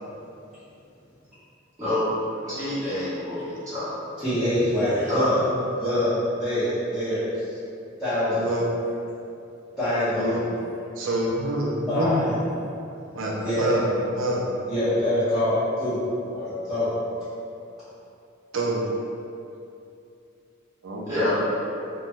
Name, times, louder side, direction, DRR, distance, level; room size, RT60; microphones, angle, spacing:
voice 1, 2.4-3.9 5.1-5.3 21.1-21.4, left 1 dB, 15° right, -15 dB, 1.4 m, -27 dB
voice 2, 4.2-5.4 5.8-7.5 8.0-8.5 9.8-10.4 11.9-12.3 13.4-13.7 14.7-16.0 16.3-16.9, left 1 dB, ahead, -19 dB, 0.9 m, -25 dB
voice 3, 8.3-8.6 10.1-10.4 10.9-12.4 13.1-14.5 18.5-18.9 20.8-21.3, right 1 dB, 80° right, -3 dB, 0.5 m, -27 dB
3.0 x 2.2 x 2.6 m, 2.6 s
head